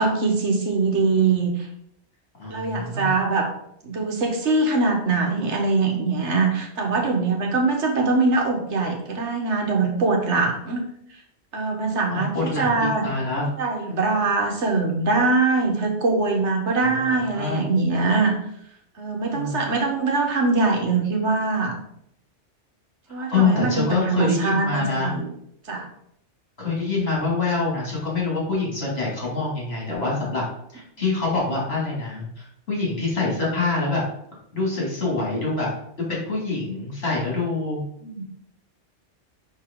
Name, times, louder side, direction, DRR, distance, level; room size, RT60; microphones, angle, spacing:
voice 1, 0.0-1.7 2.5-3.5 3.8-10.8 11.5-13.1 13.6-18.3 19.0-21.8 23.1-25.3 25.7-25.9 38.0-38.2, right 3 dB, 75° right, 2 dB, 1.4 m, -22 dB
voice 2, 2.4-3.1 12.1-13.5 16.8-17.6 19.3-19.6 23.1-25.1 26.6-30.4 30.7-34.0 34.5-35.7 36.0-37.8, left 3 dB, 60° left, -4 dB, 2.8 m, -25 dB
5.6 x 5.3 x 3.7 m, 0.73 s
omnidirectional pair, 1.2 m